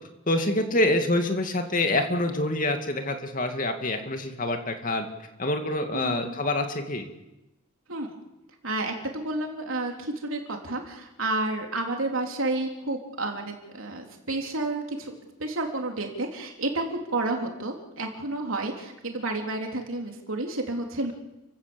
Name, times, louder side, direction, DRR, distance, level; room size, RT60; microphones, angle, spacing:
voice 1, 0.3-5.1 5.4-7.0, left 1 dB, 40° left, 5 dB, 2.4 m, -26 dB
voice 2, 5.9-6.4 7.9-8.2 8.6-15.1 15.4-21.1, right 2 dB, 85° right, 2 dB, 3.5 m, -30 dB
29.0 x 16.5 x 7.1 m, 0.97 s
head